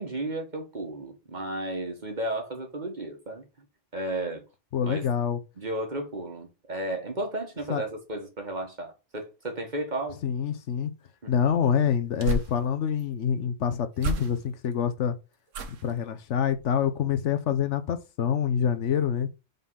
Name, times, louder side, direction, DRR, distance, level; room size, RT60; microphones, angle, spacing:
voice 1, 0.0-3.4 3.9-4.4 4.8-5.1 5.6-10.2 11.2-11.3 15.9-16.0, right 1 dB, 40° right, 1.6 m, -33 dB
voice 2, 4.7-5.4 7.7-7.8 10.2-10.9 11.3-15.1 15.8-19.3, left 8 dB, 75° left, 1.1 m, -26 dB
sound 1, 11.4-13.1 14.0-14.7 15.5-16.0 16.5-16.8 17.1-17.2, right 3 dB, 85° right, 1.3 m, -34 dB
5.5 x 3.8 x 5.6 m
omnidirectional pair, 1.3 m